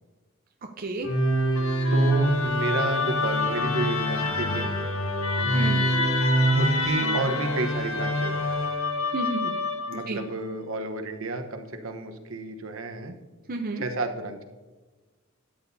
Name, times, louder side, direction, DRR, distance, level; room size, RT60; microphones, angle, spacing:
voice 1, 0.8-1.1 5.5-5.8 9.1-9.6 9.9-10.2 13.5-13.8, right 2 dB, 45° right, 3 dB, 0.7 m, -31 dB
Musical instrument, 1.0-10.2, left 1 dB, 85° left, 1.5 m, -25 dB
voice 2, 1.9-4.7 6.6-8.4 9.9-13.1 13.8-14.4, right 2 dB, 75° right, 6 dB, 1.1 m, -31 dB
12.5 x 8.8 x 2.7 m, 1.2 s
head